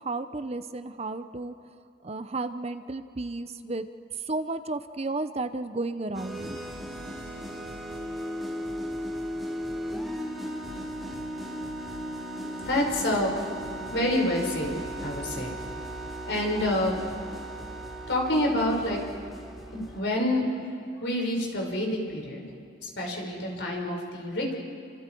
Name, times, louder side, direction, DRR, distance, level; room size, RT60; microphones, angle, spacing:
voice 1, 0.0-1.5 2.0-3.9 4.3-6.6, right 2 dB, 35° right, 10 dB, 0.7 m, -33 dB
sound 1, 6.1-20.0, equal, ahead, 2.4 m, -36 dB
voice 2, 12.5-13.3 13.9-14.7 15.0-15.5 16.3-17.0 18.1-19.0 19.7-20.6 21.0-22.4 22.8-24.5, left 1 dB, 65° left, 0 dB, 5.2 m, -27 dB
30.0 x 26.0 x 4.6 m, 2.6 s
head